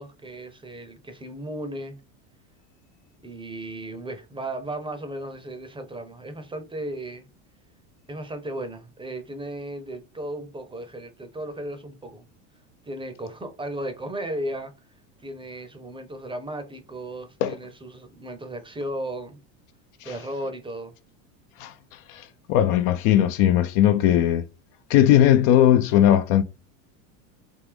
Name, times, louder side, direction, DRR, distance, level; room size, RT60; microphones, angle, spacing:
voice 1, 0.0-2.0 3.2-7.3 8.1-12.2 12.9-14.7 15.2-19.4 20.0-20.9, right 1 dB, 10° right, 0.7 m, -35 dB
voice 2, 22.1-24.4 24.9-26.4, left 11 dB, 55° left, 0.6 m, -19 dB
3.6 x 2.6 x 3.4 m
hypercardioid pair, 100°, 42 cm